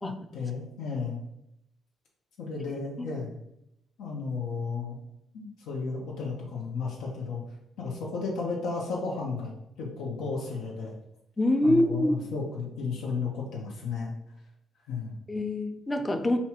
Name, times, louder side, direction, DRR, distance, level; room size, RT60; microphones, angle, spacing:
voice 1, 0.0-1.2 2.4-3.4 4.0-5.0 5.3-7.4 7.8-9.5 9.8-10.9 11.6-14.1 14.9-15.1, left 4 dB, 90° left, -2 dB, 0.8 m, -33 dB
voice 2, 11.4-12.1 15.3-16.4, left 1 dB, 20° left, 7 dB, 0.5 m, -25 dB
4.2 x 2.3 x 4.3 m, 0.81 s
cardioid pair, 90°, 0 cm